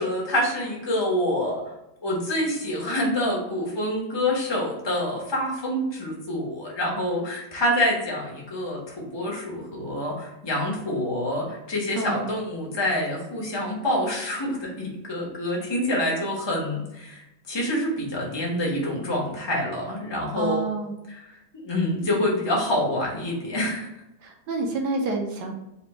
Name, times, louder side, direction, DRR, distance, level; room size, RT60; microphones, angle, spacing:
voice 1, 0.0-1.6 2.0-20.6 21.6-23.9, left 1 dB, 30° left, -3 dB, 0.4 m, -26 dB
voice 2, 11.9-12.3 20.3-20.9 24.2-25.5, right 3 dB, 65° right, 2 dB, 1.1 m, -28 dB
4.3 x 2.6 x 4.2 m, 0.90 s
omnidirectional pair, 2.3 m